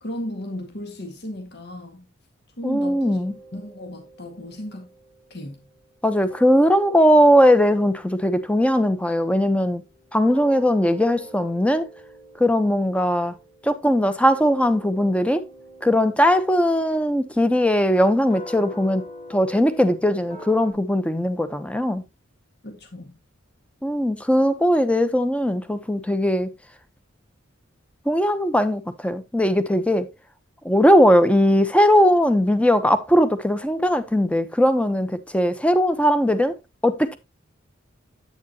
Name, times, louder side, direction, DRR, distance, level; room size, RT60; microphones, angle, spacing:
voice 1, 0.0-2.1 2.6-3.2 3.5-4.9 5.3-5.6 22.6-23.2, left 1 dB, 55° left, 1.9 m, -35 dB
voice 2, 2.6-3.3 6.0-9.8 10.1-11.9 12.4-13.3 13.6-15.5 15.8-22.0 23.8-26.5 28.0-30.1 30.6-36.6 36.8-37.2, equal, 5° left, 0.9 m, -19 dB
sound 1, 2.8-6.0 6.3-20.7, right 1 dB, 25° left, 3.1 m, -45 dB
10.0 x 8.8 x 2.9 m
head